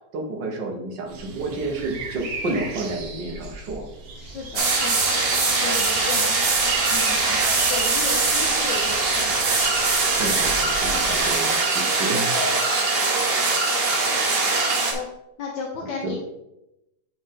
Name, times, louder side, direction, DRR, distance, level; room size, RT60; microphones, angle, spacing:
voice 1, 0.1-3.9 10.2-12.2 16.0-16.1, right 2 dB, 85° right, 2 dB, 1.9 m, -30 dB
sound 1, 1.1-11.2, right 3 dB, 60° right, 1.4 m, -37 dB
voice 2, 4.1-6.6 6.9-9.6 14.6-15.1 15.4-16.1, left 4 dB, 75° left, -1 dB, 1.5 m, -34 dB
sound 2, 4.6-14.9, right 3 dB, 40° right, 1.0 m, -22 dB
6.7 x 5.6 x 3.7 m, 0.89 s
omnidirectional pair, 1.9 m